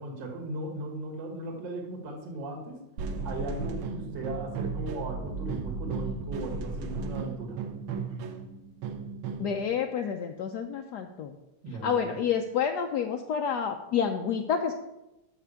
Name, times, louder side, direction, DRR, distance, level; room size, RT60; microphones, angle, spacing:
voice 1, 0.0-2.8 3.2-7.6 11.6-12.2, right 2 dB, 60° right, 1 dB, 2.3 m, -37 dB
sound 1, 3.0-9.6, right 4 dB, 75° right, 1.6 m, -35 dB
voice 2, 9.4-11.3 11.8-14.8, left 7 dB, 75° left, 4 dB, 0.9 m, -29 dB
6.6 x 5.9 x 6.9 m, 0.94 s
omnidirectional pair, 2.4 m